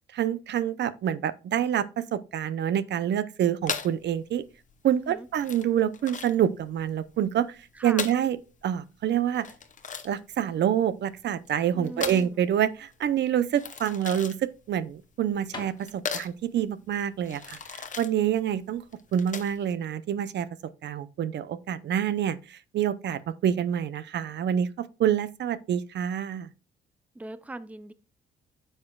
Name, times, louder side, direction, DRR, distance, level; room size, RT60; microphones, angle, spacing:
voice 1, 0.0-4.4 4.8-8.4 8.6-9.5 10.0-18.8 19.1-20.5 20.8-26.5, right 10 dB, 65° right, 0.6 m, -27 dB
sound 1, 3.6-19.7, left 6 dB, 40° left, 1.0 m, -38 dB
voice 2, 4.9-5.3 7.7-8.0 11.7-12.4 27.1-27.9, right 2 dB, 5° right, 0.6 m, -40 dB
sound 2, 15.1-19.3, left 3 dB, 20° left, 2.0 m, -48 dB
9.6 x 6.5 x 2.3 m
cardioid pair, 90°, 20 cm